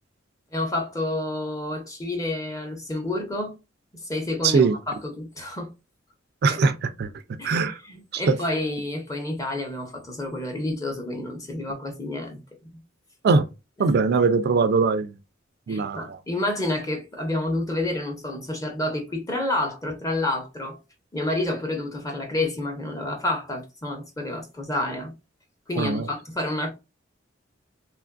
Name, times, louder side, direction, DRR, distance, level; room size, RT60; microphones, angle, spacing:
voice 1, 0.5-3.5 4.0-5.7 6.5-6.6 7.4-12.4 13.8-13.9 15.7-20.8 21.1-25.1 25.7-26.7, left 1 dB, 15° left, 0.7 m, -29 dB
voice 2, 4.4-4.7 6.4-7.1 7.4-7.7 8.1-8.3 13.2-13.4 13.8-15.1 15.7-16.0 25.8-26.0, right 4 dB, 55° right, 0.3 m, -21 dB
3.1 x 2.5 x 2.2 m
head